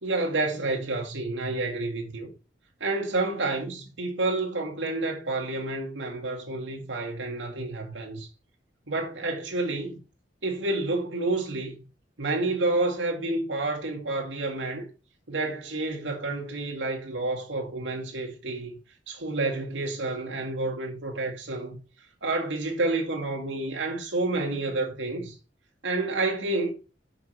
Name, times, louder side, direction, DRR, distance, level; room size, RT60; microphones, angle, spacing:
voice 1, 0.0-2.3 2.8-8.3 8.9-10.0 10.4-11.9 12.2-14.9 15.3-18.7 19.1-21.8 22.2-25.3 25.8-26.7, right 2 dB, 75° right, 2.0 m, -29 dB
6.0 x 5.6 x 4.5 m
head